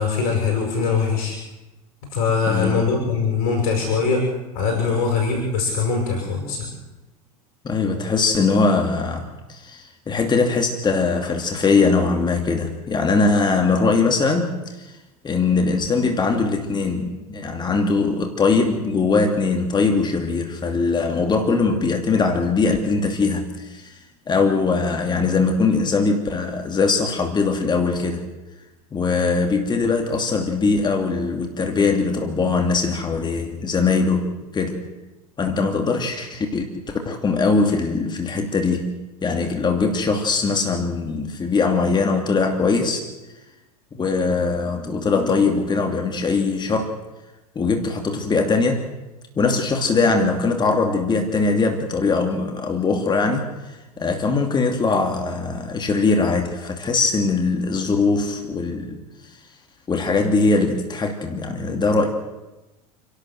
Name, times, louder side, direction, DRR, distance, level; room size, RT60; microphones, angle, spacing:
voice 1, 0.0-1.4 2.1-6.7, left 5 dB, 65° left, 1 dB, 7.2 m, -22 dB
voice 2, 2.5-2.8 7.6-14.5 15.2-23.9 24.3-28.2 28.9-34.8 35.4-43.0 43.9-46.9 47.6-48.9 49.4-59.0 59.9-62.1, left 4 dB, 20° left, 4 dB, 2.7 m, -21 dB
29.0 x 12.0 x 7.9 m, 1.1 s
hypercardioid pair, 90°, 20 cm